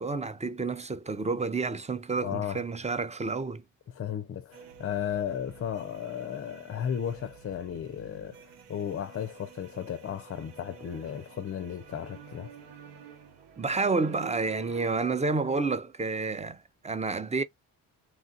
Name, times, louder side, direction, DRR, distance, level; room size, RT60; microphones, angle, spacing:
voice 1, 0.0-3.6 13.6-17.4, right 4 dB, 15° right, 0.5 m, -30 dB
voice 2, 2.2-2.6 3.9-12.5, left 9 dB, 35° left, 0.5 m, -35 dB
sound 1, 4.5-15.0, right 9 dB, 85° right, 0.8 m, -49 dB
3.0 x 2.3 x 2.6 m
supercardioid pair, 55°, 41 cm